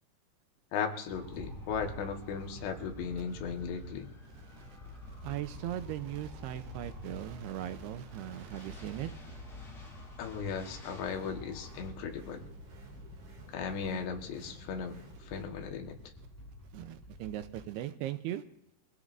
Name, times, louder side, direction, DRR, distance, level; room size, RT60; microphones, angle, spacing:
voice 1, 0.7-4.1 10.2-12.5 13.5-14.9 15.2-16.0, left 6 dB, 80° left, 4 dB, 3.6 m, -37 dB
sound 1, 1.1-11.9, left 1 dB, 35° left, 8.8 m, -48 dB
voice 2, 4.3-9.4 16.7-18.4, right 13 dB, 80° right, 10 dB, 2.6 m, -39 dB
sound 2, 4.8-17.7, left 1 dB, 5° left, 6.1 m, -51 dB
sound 3, 11.0-15.4, right 3 dB, 45° right, 3.6 m, -53 dB
24.0 x 16.5 x 2.6 m, 0.78 s
omnidirectional pair, 4.9 m